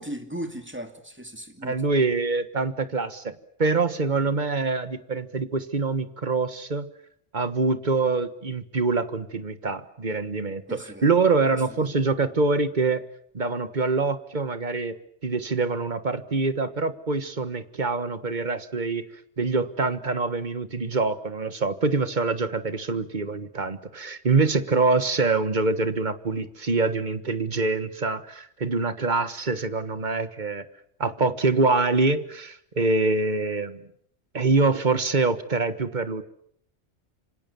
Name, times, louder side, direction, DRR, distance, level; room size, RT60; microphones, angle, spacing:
voice 1, 0.0-1.9 10.7-11.2 11.5-11.9, right 1 dB, 10° right, 6 dB, 2.6 m, -37 dB
voice 2, 1.6-3.3 3.6-6.9 7.3-13.0 13.3-15.0 15.2-19.0 19.4-30.6 31.0-33.8 34.3-36.2, right 3 dB, 40° right, 12 dB, 1.5 m, -25 dB
27.0 x 25.5 x 7.0 m, 0.67 s
omnidirectional pair, 1.2 m